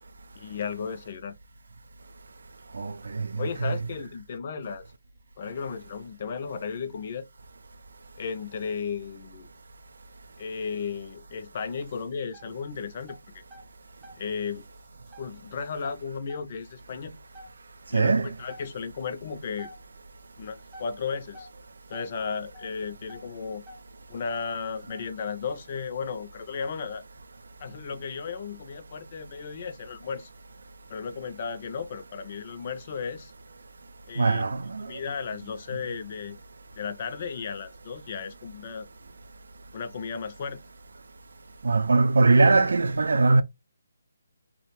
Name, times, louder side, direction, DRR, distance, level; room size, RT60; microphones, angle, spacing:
voice 1, 0.4-1.4 3.4-4.9 5.4-7.3 8.2-9.5 10.4-13.4 14.2-14.7 15.2-17.1 17.9-19.7 20.4-21.5 21.9-23.6 24.1-27.0 27.6-30.3 30.9-33.3 34.1-34.5 34.8-36.4 36.8-38.9 39.7-40.6, left 6 dB, 40° left, 0.4 m, -34 dB
voice 2, 2.8-3.7 17.9-18.3 34.2-34.9 41.6-43.4, right 3 dB, 70° right, 0.3 m, -21 dB
sound 1, 11.9-12.7 13.0-14.3 14.6-15.3 15.8-16.7 17.1-17.2 17.3-17.6 18.2-18.3 18.5-18.7 19.0-19.1 19.6-19.9 20.7-21.6 21.9-23.3 23.6-23.9 24.3-25.1, equal, 15° right, 0.6 m, -47 dB
2.3 x 2.1 x 3.0 m
figure-of-eight pair, 155°, 0 cm